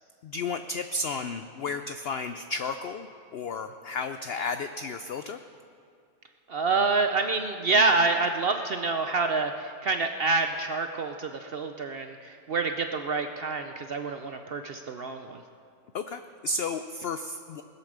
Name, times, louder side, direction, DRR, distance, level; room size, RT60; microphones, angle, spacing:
voice 1, 0.2-5.4 15.9-17.6, left 3 dB, 75° left, 9 dB, 0.5 m, -33 dB
voice 2, 6.5-15.4, right 3 dB, 60° right, 6 dB, 0.6 m, -27 dB
19.5 x 8.3 x 6.6 m, 2.4 s
omnidirectional pair, 1.6 m